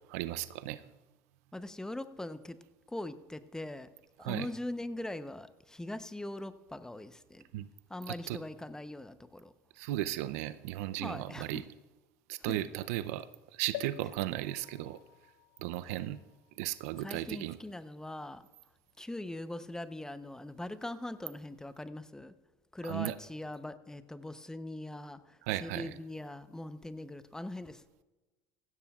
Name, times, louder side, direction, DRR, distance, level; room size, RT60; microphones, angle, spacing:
voice 1, 0.1-0.8 4.2-4.5 7.5-7.7 8.3-8.4 9.8-11.6 12.3-15.0 15.6-16.2 16.6-17.6 22.8-23.1 25.5-25.9, right 15 dB, 75° right, 0.5 m, -35 dB
voice 2, 1.5-2.6 2.9-3.9 4.2-7.5 7.9-9.5 11.0-11.6 12.5-12.6 17.0-18.5 19.0-22.4 22.7-27.8, left 1 dB, 5° left, 0.8 m, -41 dB
sound 1, 13.7-17.4 18.0-18.1 18.3-18.4, left 16 dB, 75° left, 0.3 m, -48 dB
16.0 x 15.5 x 2.4 m
hypercardioid pair, 85°, 8 cm